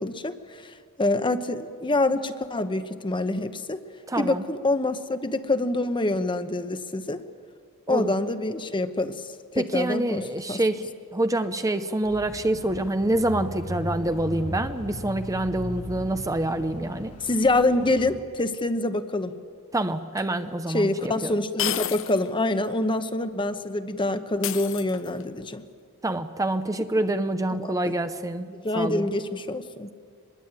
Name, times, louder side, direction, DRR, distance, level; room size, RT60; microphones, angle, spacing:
voice 1, 0.0-3.8 4.2-7.2 7.9-10.2 10.5-10.6 17.2-19.3 20.7-25.6 27.6-27.9 28.5-29.9, left 2 dB, 20° left, 10 dB, 1.0 m, -26 dB
voice 2, 4.1-4.4 7.9-8.1 9.5-10.8 11.1-17.1 19.7-21.3 26.0-28.5 28.7-29.1, right 1 dB, 15° right, 9 dB, 0.7 m, -26 dB
Bicycle / Mechanisms, 12.0-18.2, left 1 dB, 85° left, 1.9 m, -37 dB
sound 1, 20.2-20.3 21.6-22.3 22.6-22.7 24.4-25.3, left 11 dB, 60° left, 0.9 m, -31 dB
24.0 x 21.0 x 9.0 m, 2.1 s
head